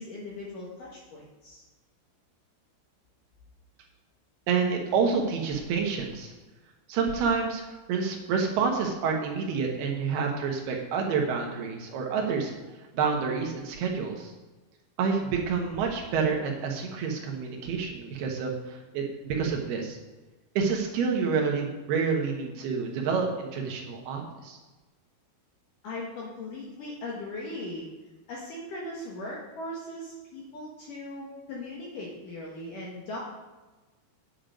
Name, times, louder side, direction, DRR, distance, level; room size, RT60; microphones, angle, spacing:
voice 1, 0.0-1.6 25.8-27.9 28.3-33.2, left 1 dB, 65° left, -4 dB, 2.1 m, -39 dB
voice 2, 4.5-6.3 6.9-12.5 12.9-14.3 15.0-20.0 20.6-24.6, right 5 dB, 70° right, 1 dB, 2.6 m, -28 dB
9.1 x 8.6 x 5.2 m, 1.2 s
omnidirectional pair, 5.8 m